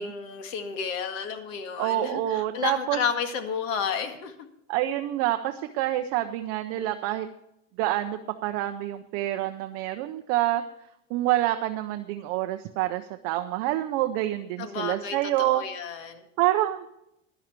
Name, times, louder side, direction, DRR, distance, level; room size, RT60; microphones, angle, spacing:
voice 1, 0.0-4.5 14.6-16.2, left 6 dB, 80° left, 7 dB, 1.9 m, -32 dB
voice 2, 1.8-3.0 4.7-7.3 7.8-10.6 11.1-15.6 16.4-16.9, right 14 dB, 40° right, 7 dB, 0.6 m, -27 dB
12.5 x 11.0 x 4.6 m, 0.80 s
supercardioid pair, 175°, 39 cm